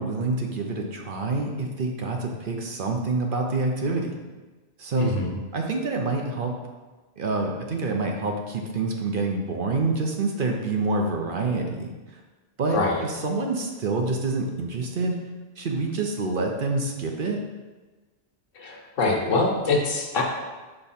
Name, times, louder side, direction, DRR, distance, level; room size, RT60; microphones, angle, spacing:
voice 1, 0.0-4.2 4.8-5.1 5.5-6.5 7.2-12.2 12.6-15.2 15.6-17.4, right 3 dB, 50° right, 2 dB, 0.8 m, -27 dB
voice 2, 5.0-5.4 12.7-13.0 18.5-20.2, left 3 dB, 90° left, 0 dB, 1.4 m, -24 dB
5.5 x 4.6 x 4.2 m, 1.2 s
omnidirectional pair, 1.3 m